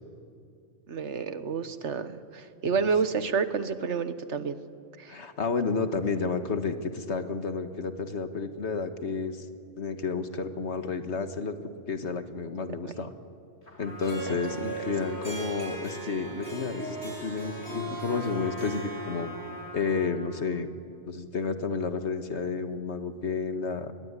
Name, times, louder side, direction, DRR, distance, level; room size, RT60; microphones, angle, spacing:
voice 1, 0.9-4.6 5.0-5.2 12.8-12.9, right 5 dB, 80° right, 11 dB, 1.5 m, -29 dB
voice 2, 5.1-9.5 9.8-11.5 11.9-13.1 13.8-19.3 19.7-20.7 21.1-23.9, left 4 dB, 75° left, 8 dB, 1.9 m, -31 dB
Trumpet, 13.6-20.5, equal, 50° left, 5.2 m, -45 dB
Harp, 14.0-19.8, right 1 dB, 55° right, 8.2 m, -38 dB
27.0 x 22.0 x 9.8 m, 2.4 s
omnidirectional pair, 1.2 m